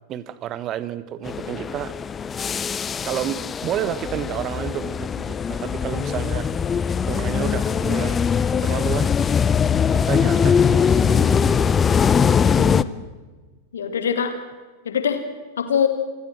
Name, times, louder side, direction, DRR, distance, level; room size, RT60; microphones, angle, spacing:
voice 1, 0.1-1.9 2.4-2.5 3.0-6.5 7.1-8.2 8.5-9.1 9.9-11.9, right 11 dB, 30° right, 15 dB, 1.3 m, -30 dB
sound 1, 1.3-12.8, left 7 dB, 20° left, 0.6 m, -21 dB
voice 2, 12.6-13.0 13.7-14.4 14.8-15.2 15.6-15.9, left 7 dB, 65° left, 8 dB, 2.6 m, -23 dB
27.5 x 17.5 x 6.3 m, 1.4 s
figure-of-eight pair, 90°, 0 cm